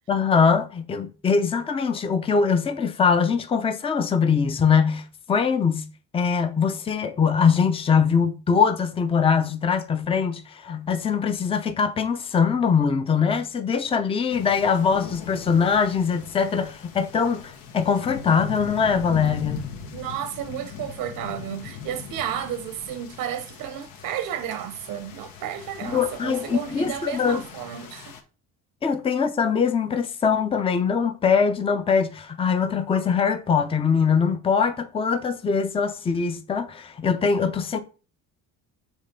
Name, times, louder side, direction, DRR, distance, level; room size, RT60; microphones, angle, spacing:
voice 1, 0.1-19.6 25.8-27.4 28.8-37.8, left 6 dB, 15° left, 0.6 m, -22 dB
sound 1, 14.3-28.2, left 7 dB, 80° left, 1.4 m, -39 dB
voice 2, 19.9-28.1, right 10 dB, 75° right, 0.9 m, -32 dB
6.4 x 3.1 x 5.3 m
cardioid pair, 140°, 33 cm